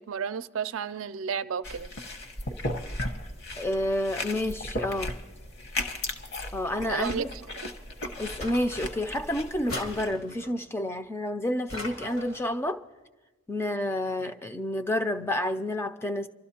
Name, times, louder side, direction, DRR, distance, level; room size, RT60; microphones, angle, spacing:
voice 1, 0.0-1.9 6.9-7.4, right 7 dB, 70° right, 0.4 m, -32 dB
sound 1, 1.6-10.1, left 1 dB, 55° left, 1.0 m, -36 dB
voice 2, 3.6-5.2 6.5-7.3 8.2-12.8 13.5-16.3, left 1 dB, 10° left, 0.4 m, -29 dB
sound 2, 8.4-9.2 9.7-10.6 11.7-12.5, left 1 dB, 80° left, 2.3 m, -39 dB
28.5 x 12.5 x 2.8 m
head